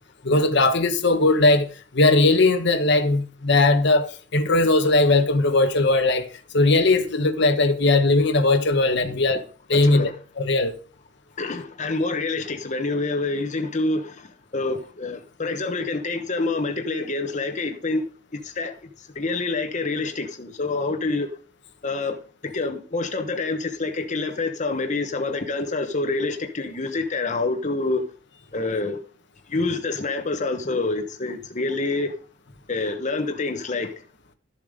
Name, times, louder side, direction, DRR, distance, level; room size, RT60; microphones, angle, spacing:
voice 1, 0.2-6.3 6.5-9.4 9.7-10.1 10.4-10.7, left 2 dB, 60° left, 1.3 m, -19 dB
voice 2, 9.7-10.1 11.4-18.0 18.4-21.3 21.8-22.2 22.4-28.0 28.5-29.0 29.5-32.1 32.7-33.9, left 3 dB, 40° left, 1.1 m, -27 dB
13.0 x 7.3 x 5.1 m
head